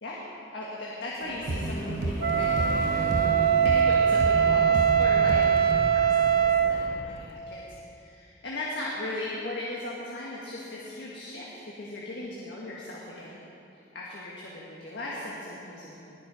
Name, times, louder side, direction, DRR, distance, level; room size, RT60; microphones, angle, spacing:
voice 1, 0.5-3.3 3.6-7.6 7.9-13.4 13.9-16.2, left 1 dB, 80° left, -5 dB, 1.7 m, -38 dB
sound 1, 1.2-7.0, equal, 45° left, 2.2 m, -38 dB
sound 2, 1.5-6.0, right 2 dB, 90° right, 0.8 m, -32 dB
Wind instrument woodwind instrument, 2.2-6.8, right 7 dB, 55° right, 0.6 m, -22 dB
20.0 x 6.7 x 5.0 m, 2.7 s
head